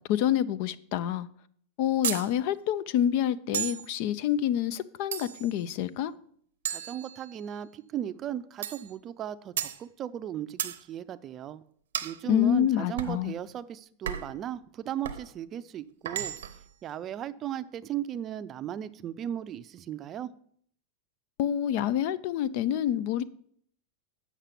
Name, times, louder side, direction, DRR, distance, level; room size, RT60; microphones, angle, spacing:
voice 1, 0.1-1.3 1.8-6.1 12.3-13.3 21.4-23.2, left 10 dB, 60° left, 0.5 m, -27 dB
sound 1, 2.0-2.3 3.5-3.9 5.1-5.6 6.7-7.6 8.6-8.9 9.6-9.8 10.6-10.8 11.9-12.2 13.0-13.2 14.1-14.4 15.0-15.3 16.1-16.7, right 10 dB, 85° right, 0.7 m, -34 dB
voice 2, 6.7-11.6 12.0-16.3 16.8-20.3, right 10 dB, 35° right, 0.4 m, -36 dB
8.1 x 5.9 x 5.8 m
hypercardioid pair, 120°, 0 cm